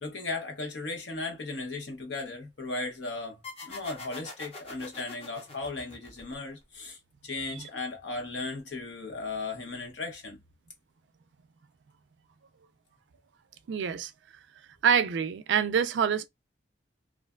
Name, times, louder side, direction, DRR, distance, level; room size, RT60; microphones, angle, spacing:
voice 1, 0.0-10.4, left 3 dB, 80° left, 1.0 m, -36 dB
sound 1, 3.4-6.7, left 3 dB, 35° left, 0.6 m, -45 dB
voice 2, 13.7-14.1 14.8-16.3, right 7 dB, 75° right, 0.4 m, -26 dB
2.5 x 2.2 x 2.3 m
head